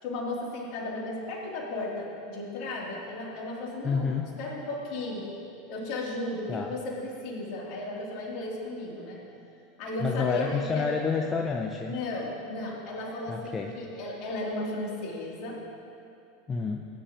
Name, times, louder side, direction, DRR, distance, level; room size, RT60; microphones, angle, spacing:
voice 1, 0.0-4.1 4.4-5.3 5.7-9.2 9.8-11.0 11.8-15.6, left 2 dB, 55° left, -3 dB, 2.9 m, -35 dB
voice 2, 3.8-4.3 6.5-6.7 10.0-12.0 13.3-13.7 16.5-16.8, left 5 dB, 25° left, 2 dB, 0.7 m, -29 dB
18.5 x 9.9 x 2.9 m, 2.6 s
hypercardioid pair, 85°, 0 cm